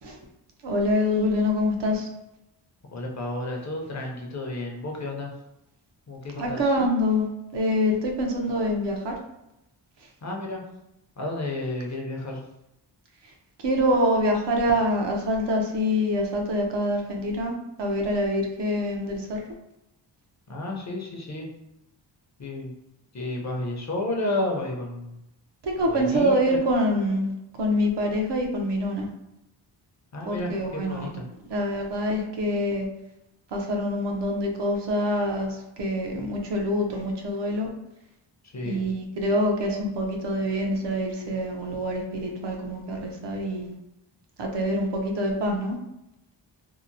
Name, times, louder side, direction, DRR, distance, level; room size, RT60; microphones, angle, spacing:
voice 1, 0.6-2.1 6.4-9.1 13.6-17.5 17.8-19.4 25.6-27.3 27.6-29.1 30.2-31.2 31.5-32.9 33.5-37.7 38.6-43.7 44.4-45.8, equal, 70° right, 1 dB, 0.6 m, -25 dB
voice 2, 2.9-5.3 6.1-6.7 10.2-10.6 11.2-12.4 20.5-21.5 22.4-22.7 23.1-25.2 25.9-26.4 30.1-31.2 38.4-38.8, left 2 dB, 40° left, 0 dB, 0.5 m, -31 dB
2.8 x 2.0 x 2.5 m, 0.88 s
wide cardioid pair, 120°, 44 cm